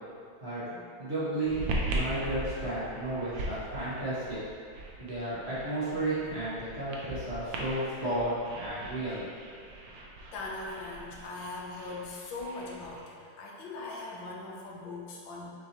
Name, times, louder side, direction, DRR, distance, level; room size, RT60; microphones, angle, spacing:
voice 1, 0.4-4.4 5.0-9.3, right 1 dB, 40° right, -12 dB, 1.3 m, -33 dB
sound 1, 1.4-13.0, right 1 dB, 75° right, 1.3 m, -39 dB
voice 2, 10.3-15.5, left 2 dB, 80° left, -2 dB, 1.4 m, -40 dB
6.4 x 2.9 x 2.9 m, 2.3 s
omnidirectional pair, 2.1 m